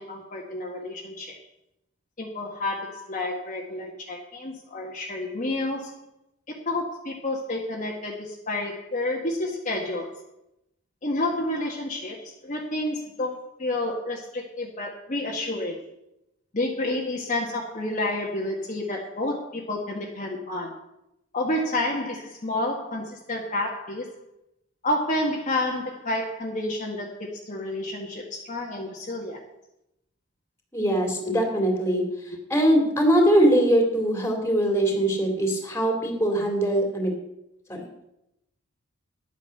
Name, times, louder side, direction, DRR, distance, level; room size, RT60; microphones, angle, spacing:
voice 1, 0.0-1.4 2.2-5.9 6.5-10.2 11.0-15.8 16.5-20.8 21.3-24.2 24.8-29.4 31.2-31.3, left 1 dB, 40° left, -2 dB, 1.6 m, -30 dB
voice 2, 30.7-32.0 32.5-37.1 37.7-37.9, right 1 dB, 15° left, 2 dB, 2.9 m, -22 dB
11.5 x 9.2 x 6.6 m, 0.85 s
head